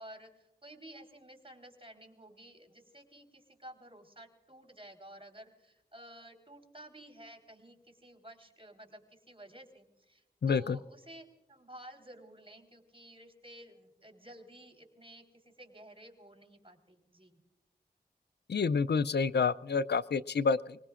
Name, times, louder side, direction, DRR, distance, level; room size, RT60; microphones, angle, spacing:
voice 1, 0.0-17.4, right 1 dB, 35° right, 3 dB, 4.0 m, -53 dB
voice 2, 10.4-10.8 18.5-20.8, left 5 dB, 80° left, 17 dB, 0.4 m, -28 dB
25.0 x 20.5 x 2.5 m, 0.98 s
wide cardioid pair, 40°, 17 cm